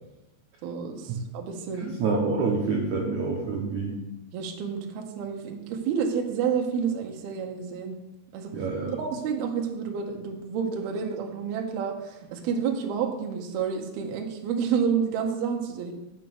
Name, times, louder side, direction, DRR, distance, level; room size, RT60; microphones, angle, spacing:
voice 1, 0.6-2.0 4.3-8.0 8.3-8.5 9.0-15.9, right 6 dB, 70° right, 2 dB, 2.7 m, -29 dB
voice 2, 1.8-4.0 8.5-9.0, right 4 dB, 85° right, -1 dB, 1.6 m, -27 dB
7.8 x 6.0 x 7.8 m, 0.95 s
omnidirectional pair, 5.4 m